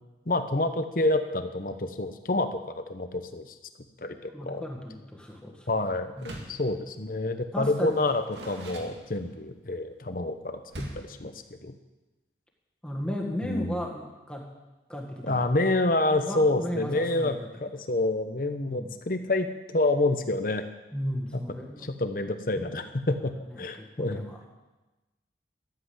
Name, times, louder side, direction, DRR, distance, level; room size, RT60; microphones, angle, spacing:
voice 1, 0.3-3.5 4.0-4.6 5.7-10.6 10.9-11.3 11.6-11.7 13.4-13.8 15.2-20.6 21.3-21.4 21.8-24.3, left 2 dB, 50° left, 8 dB, 0.9 m, -28 dB
voice 2, 4.3-5.7 6.2-6.5 7.5-8.0 12.8-14.5 14.9-15.4 16.1-17.4 18.7-18.9 20.9-21.9 23.5-24.5, equal, 5° left, -1 dB, 1.6 m, -35 dB
Door, 6.1-6.7 7.8-9.5 10.7-11.2, right 1 dB, 85° right, 2.0 m, -41 dB
13.5 x 7.9 x 7.8 m, 1.1 s
head